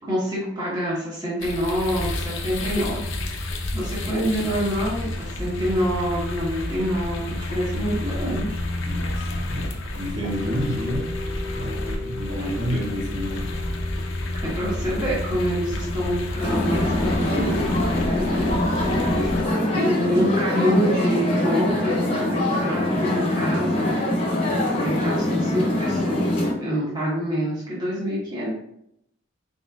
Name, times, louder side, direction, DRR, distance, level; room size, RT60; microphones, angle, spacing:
voice 1, 0.0-8.6 12.4-12.5 14.4-17.7 18.0-18.8 19.0-19.3 19.7-23.9 24.7-28.5, equal, 20° right, -7 dB, 1.2 m, -27 dB
sound 1, 1.4-19.4, left 1 dB, 70° left, 0.6 m, -29 dB
voice 2, 8.8-11.1 11.5-13.5, equal, 60° right, -5 dB, 1.5 m, -30 dB
sound 2, 10.2-17.9, left 2 dB, 85° right, 1.1 m, -38 dB
sound 3, 16.4-26.5, left 1 dB, 30° left, 0.9 m, -23 dB
4.2 x 4.1 x 2.3 m, 0.75 s
head